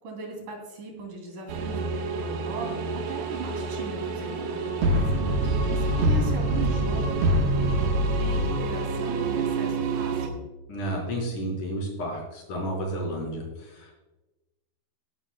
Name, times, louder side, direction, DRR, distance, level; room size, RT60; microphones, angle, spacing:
voice 1, 0.0-5.0 5.7-10.4, right 2 dB, 55° right, 2 dB, 4.3 m, -38 dB
sound 1, 1.5-10.3, right 2 dB, 75° right, 3.3 m, -26 dB
voice 2, 10.7-13.9, right 1 dB, 50° left, -2 dB, 5.8 m, -31 dB
18.5 x 11.5 x 2.3 m, 1.1 s
omnidirectional pair, 4.6 m